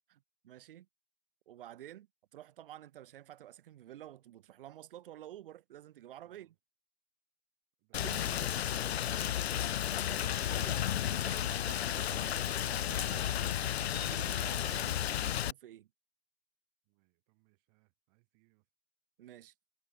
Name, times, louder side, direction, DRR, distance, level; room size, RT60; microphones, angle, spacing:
voice 1, 0.1-0.9 1.5-6.5 8.0-8.5 9.0-9.1 10.0-15.9 19.2-19.5, right 12 dB, 55° right, 1.2 m, -51 dB
voice 2, 6.2-6.6 7.8-8.6 8.9-9.4 16.8-18.7, right 38 dB, 35° right, 7.0 m, -71 dB
Rain, 7.9-15.5, left 11 dB, 80° left, 0.6 m, -33 dB
hypercardioid pair, 130°, 32 cm